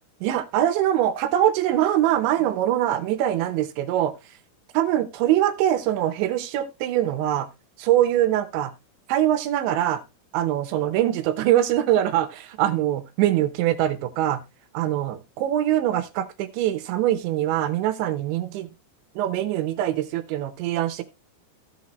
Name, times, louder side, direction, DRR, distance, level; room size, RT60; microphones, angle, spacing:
voice 1, 0.2-4.1 4.7-7.5 7.8-8.7 9.1-10.0 10.3-14.4 14.7-18.7 19.2-21.0, right 12 dB, 80° right, 10 dB, 2.9 m, -23 dB
15.5 x 5.5 x 3.0 m, 0.26 s
omnidirectional pair, 5.6 m